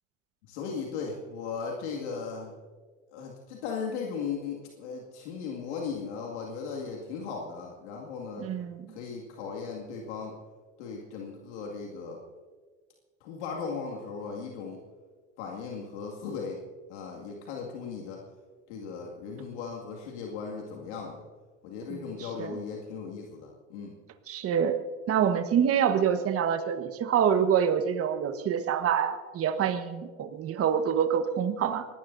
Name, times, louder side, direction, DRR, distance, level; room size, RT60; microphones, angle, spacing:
voice 1, 0.5-2.5 3.1-8.5 8.9-10.3 10.8-12.2 13.2-14.8 15.4-16.6 16.9-18.2 18.7-21.2 21.6-23.9, left 5 dB, 80° left, -1 dB, 2.3 m, -37 dB
voice 2, 8.4-9.0 21.9-22.0 22.4-22.6 24.3-24.8 25.1-31.9, right 8 dB, 40° right, 8 dB, 1.4 m, -26 dB
24.0 x 19.0 x 2.7 m, 1.5 s
hypercardioid pair, 85°, 34 cm